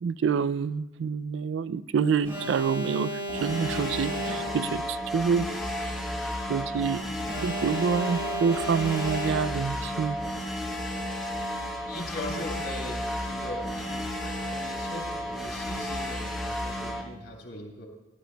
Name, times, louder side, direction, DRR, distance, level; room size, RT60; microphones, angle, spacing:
voice 1, 0.0-5.5 6.5-7.1 7.4-10.2, right 6 dB, 70° right, 16 dB, 0.3 m, -27 dB
Alarm, 2.2-4.8 7.2-9.8, right 1 dB, 20° right, 1.8 m, -34 dB
sound 1, 3.3-17.0, equal, ahead, 1.1 m, -33 dB
voice 2, 11.8-17.9, left 1 dB, 80° left, -1 dB, 3.4 m, -40 dB
17.5 x 12.0 x 2.3 m, 0.99 s
head